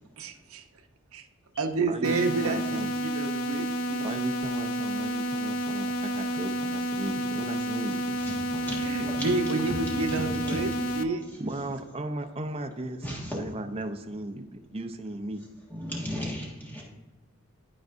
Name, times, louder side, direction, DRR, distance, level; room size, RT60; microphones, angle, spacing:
voice 1, 0.2-0.6 1.1-1.3 1.6-4.1 8.8-11.2, right 3 dB, 80° right, 6 dB, 0.7 m, -30 dB
voice 2, 1.9-2.9 4.0-8.2 11.4-15.4, right 1 dB, 25° right, 5 dB, 0.5 m, -36 dB
sound 1, 2.0-11.0, right 1 dB, 75° left, 0.5 m, -30 dB
voice 3, 8.2-9.3 10.1-10.6 13.0-13.4 15.7-16.8, equal, 10° left, -5 dB, 1.5 m, -35 dB
12.0 x 4.6 x 2.6 m, 1.2 s
head